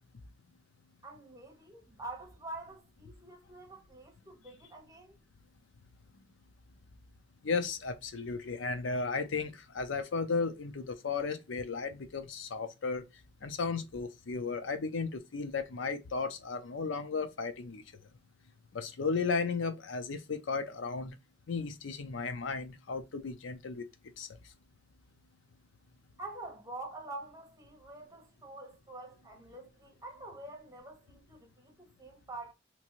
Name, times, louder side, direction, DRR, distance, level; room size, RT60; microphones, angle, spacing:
voice 1, 1.0-5.2 26.2-32.5, right 2 dB, 20° right, 1.0 m, -46 dB
voice 2, 7.4-13.0 13.4-17.8 18.7-21.1 21.5-23.8 24.2-24.3, left 4 dB, 85° left, 0.6 m, -34 dB
3.0 x 2.6 x 2.9 m
head